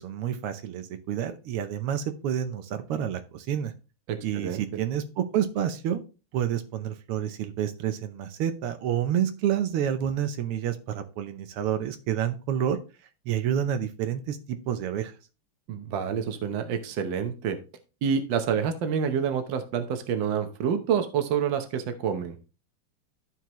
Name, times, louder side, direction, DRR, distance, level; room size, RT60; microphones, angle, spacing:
voice 1, 0.0-3.7 4.2-6.0 6.3-12.8 13.3-14.4 14.7-15.1, right 9 dB, 85° right, 9 dB, 1.7 m, -29 dB
voice 2, 4.1-4.6 15.7-17.6 18.0-22.4, right 7 dB, 65° right, 8 dB, 1.6 m, -28 dB
13.0 x 4.7 x 3.0 m, 0.33 s
omnidirectional pair, 2.4 m